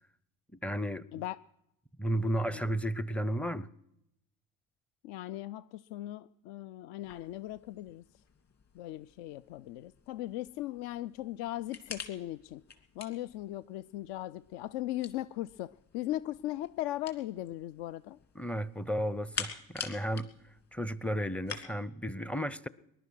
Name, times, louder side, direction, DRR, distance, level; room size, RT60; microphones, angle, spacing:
voice 1, 0.6-1.1 2.0-3.7 18.4-20.3 20.7-22.7, equal, 5° left, 19 dB, 0.5 m, -33 dB
voice 2, 5.0-8.0 8.7-12.6 13.0-18.2, left 15 dB, 65° left, 16 dB, 0.5 m, -38 dB
sound 1, 7.0-21.6, left 6 dB, 35° left, 2.5 m, -47 dB
20.0 x 11.0 x 6.2 m, 0.80 s
hypercardioid pair, 70°, 44 cm